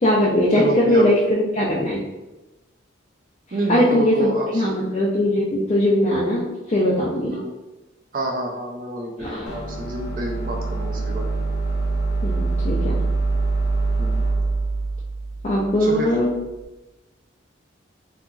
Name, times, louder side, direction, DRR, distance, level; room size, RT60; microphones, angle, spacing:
voice 1, 0.0-2.0 3.7-7.3 9.2-9.5 12.2-13.0 15.4-16.3, left 1 dB, 35° left, -5 dB, 0.3 m, -20 dB
voice 2, 0.6-1.1 3.5-4.7 7.3-7.5 8.1-11.3 14.0-14.1 15.8-16.2, right 1 dB, 45° right, 0 dB, 0.4 m, -28 dB
sound 1, 9.5-16.5, right 3 dB, 80° left, 0.8 m, -25 dB
2.8 x 2.4 x 2.3 m, 1.0 s
head